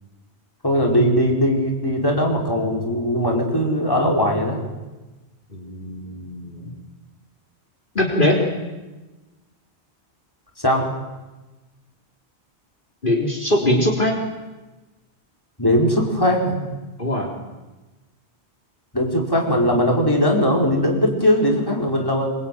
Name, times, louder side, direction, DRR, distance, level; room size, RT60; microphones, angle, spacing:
voice 1, 0.6-4.6 10.6-10.9 15.6-16.6 18.9-22.3, equal, 20° left, -1 dB, 5.1 m, -19 dB
voice 2, 5.5-6.7 7.9-8.5 13.0-14.1 17.0-17.3, left 1 dB, 50° left, -1 dB, 4.0 m, -21 dB
26.0 x 24.0 x 9.4 m, 1.1 s
omnidirectional pair, 1.1 m